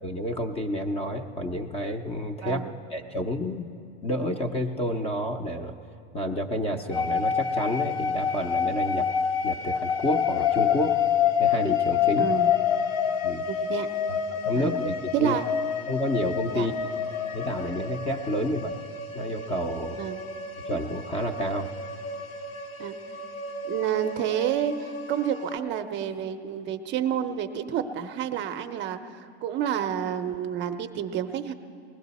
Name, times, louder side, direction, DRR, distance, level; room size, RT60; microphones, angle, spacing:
voice 1, 0.0-2.6 2.9-3.7 4.0-5.8 6.1-9.1 9.4-11.0 11.4-12.3 13.2-13.5 14.1-15.4 15.9-16.7 17.3-18.8 19.1-20.0 20.6-21.7, equal, 20° left, 6 dB, 0.5 m, -29 dB
sound 1, 6.9-25.6, left 7 dB, 65° left, 1.1 m, -28 dB
voice 2, 12.2-12.5 13.5-13.9 14.5-14.8 15.1-15.4 16.5-16.7 19.9-20.2 22.8-23.0 23.7-31.5, right 9 dB, 35° right, 7 dB, 0.5 m, -29 dB
20.0 x 15.5 x 4.1 m, 2.5 s
supercardioid pair, 135°, 33 cm